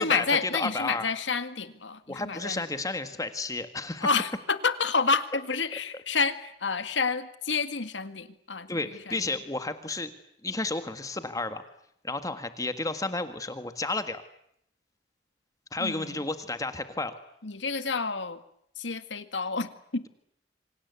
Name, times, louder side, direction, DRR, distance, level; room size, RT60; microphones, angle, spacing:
voice 1, 0.0-2.6 4.0-9.3 15.8-16.2 17.4-18.4 18.8-20.1, left 4 dB, 90° left, 10 dB, 2.0 m, -29 dB
voice 2, 0.5-1.1 2.1-4.1 8.7-10.1 10.4-11.6 12.0-14.2 15.7-17.2, left 2 dB, 20° left, 9 dB, 1.7 m, -32 dB
27.5 x 25.0 x 8.3 m, 0.73 s
head